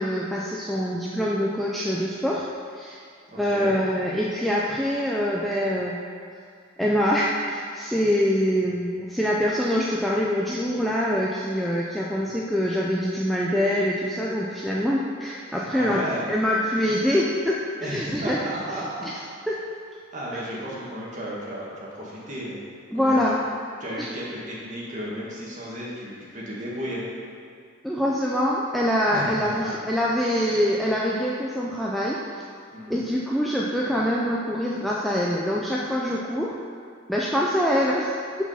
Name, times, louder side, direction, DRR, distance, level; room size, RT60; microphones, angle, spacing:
voice 1, 0.0-2.5 2.8-3.0 3.4-6.0 6.8-16.0 16.3-18.4 19.0-19.1 19.5-19.6 20.5-20.6 22.9-23.4 24.0-24.1 27.8-32.4 32.9-36.5 37.1-38.1, equal, ahead, -5 dB, 0.4 m, -24 dB
voice 2, 3.3-3.7 15.7-16.3 17.8-19.1 20.1-22.6 22.9-23.4 23.8-27.0 29.1-29.7 32.7-33.0, equal, 35° right, -6 dB, 1.5 m, -34 dB
6.1 x 4.7 x 5.5 m, 2.3 s
head